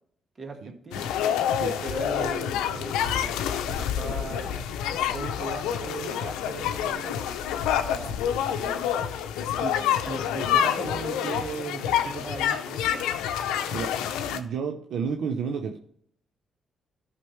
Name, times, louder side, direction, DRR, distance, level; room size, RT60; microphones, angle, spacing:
voice 1, 0.4-1.1 1.8-7.4 7.8-8.2 8.6-8.8 9.6-13.1, right 4 dB, 45° right, 5 dB, 1.6 m, -38 dB
sound 1, 0.9-14.4, left 9 dB, 90° left, 0.6 m, -27 dB
voice 2, 14.2-15.8, right 6 dB, 75° right, 4 dB, 0.7 m, -31 dB
12.5 x 5.9 x 3.2 m, 0.66 s
supercardioid pair, 55°, 0 cm